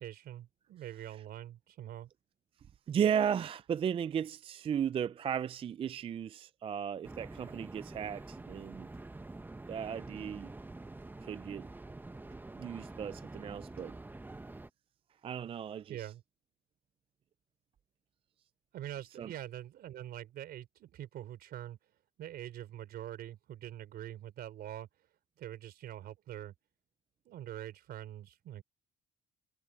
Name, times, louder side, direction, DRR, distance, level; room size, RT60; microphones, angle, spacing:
voice 1, 0.0-2.1 15.9-16.2 18.7-21.8 22.2-24.9 25.4-26.5 27.3-28.6, right 12 dB, 65° right, 4.1 m, -44 dB
voice 2, 2.9-8.9 9.7-10.5 11.2-11.7 12.5-14.0 15.2-16.1 19.2-19.3, right 8 dB, 35° right, 0.4 m, -35 dB
sound 1, 7.0-14.7, right 2 dB, 10° right, 1.3 m, -47 dB
cardioid pair, 110°, 17 cm